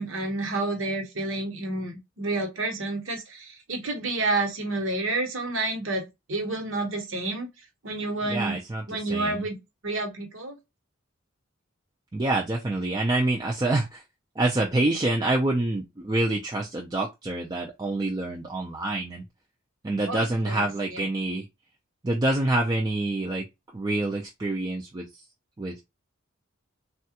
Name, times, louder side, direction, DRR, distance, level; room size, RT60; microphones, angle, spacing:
voice 1, 0.0-7.5 7.8-8.6 8.9-9.6 9.8-10.6 20.1-20.6, right 2 dB, 65° right, 1.1 m, -29 dB
voice 2, 8.3-9.4 12.1-14.0 14.4-19.2 19.8-21.5 22.0-23.5 23.7-25.3 25.6-25.8, right 2 dB, 20° right, 0.4 m, -27 dB
3.3 x 2.3 x 2.8 m
head